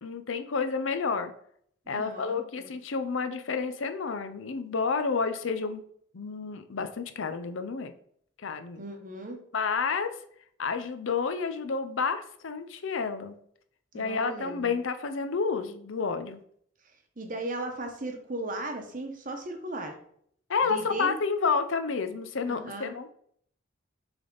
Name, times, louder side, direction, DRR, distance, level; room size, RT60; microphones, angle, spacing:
voice 1, 0.0-1.3 1.9-5.8 6.1-7.9 8.4-8.8 9.5-10.1 10.6-13.4 13.9-16.4 20.5-23.1, left 5 dB, 65° left, 9 dB, 0.6 m, -30 dB
voice 2, 1.9-2.7 8.8-9.4 13.9-14.7 17.2-20.0 20.7-21.1 22.4-22.9, right 2 dB, 40° right, 4 dB, 0.9 m, -37 dB
7.0 x 3.5 x 3.9 m, 0.64 s
head